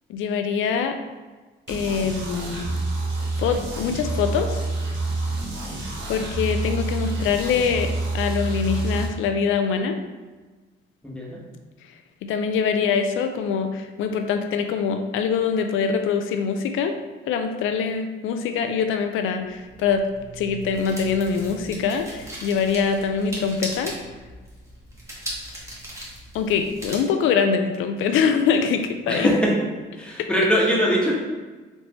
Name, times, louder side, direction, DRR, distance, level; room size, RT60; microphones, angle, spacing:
voice 1, 0.1-0.9 1.7-2.7 3.4-4.6 6.1-10.0 12.2-16.9 17.3-20.0 20.3-23.9 26.3-29.3, left 6 dB, 85° left, 7 dB, 0.5 m, -24 dB
sound 1, 1.7-9.1, right 2 dB, 65° right, 1.2 m, -28 dB
voice 2, 11.0-11.4 29.1-29.5 29.9-31.1, equal, 5° left, -4 dB, 1.1 m, -21 dB
sound 2, 19.4-27.0, right 1 dB, 15° right, 1.3 m, -38 dB
4.3 x 3.3 x 2.9 m, 1.3 s
cardioid pair, 90°, 20 cm